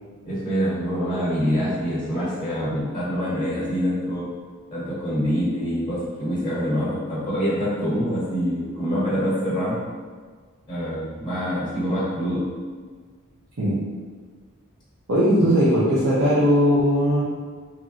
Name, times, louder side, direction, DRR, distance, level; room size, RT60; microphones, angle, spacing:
voice 1, 0.2-4.3 4.7-9.8 10.7-12.4 15.4-15.5, equal, 20° left, -10 dB, 0.7 m, -25 dB
voice 2, 15.1-17.2, equal, 70° right, -11 dB, 0.6 m, -19 dB
2.9 x 2.5 x 2.5 m, 1.5 s
head